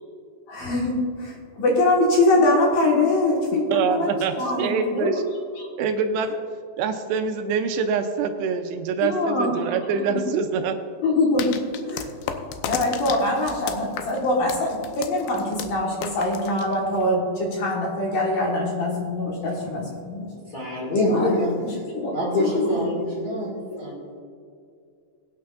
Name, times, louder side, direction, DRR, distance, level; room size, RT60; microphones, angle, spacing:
voice 1, 0.5-4.1 4.4-5.1 5.6-5.7 9.0-9.6 9.9-10.1 11.0-11.6 11.9-12.3 12.7-20.3 21.1-21.3 21.6-22.1 22.4-22.9, left 2 dB, 60° left, -2 dB, 2.7 m, -23 dB
voice 2, 3.7-5.2 5.8-6.4 6.8-10.8, right 5 dB, 80° right, 6 dB, 2.6 m, -25 dB
sound 1, 11.4-17.2, left 8 dB, 85° left, 2.5 m, -34 dB
voice 3, 19.6-19.9 20.3-21.5 22.1-24.2, left 1 dB, 40° left, -4 dB, 1.9 m, -26 dB
22.5 x 9.3 x 2.5 m, 2.3 s
omnidirectional pair, 5.2 m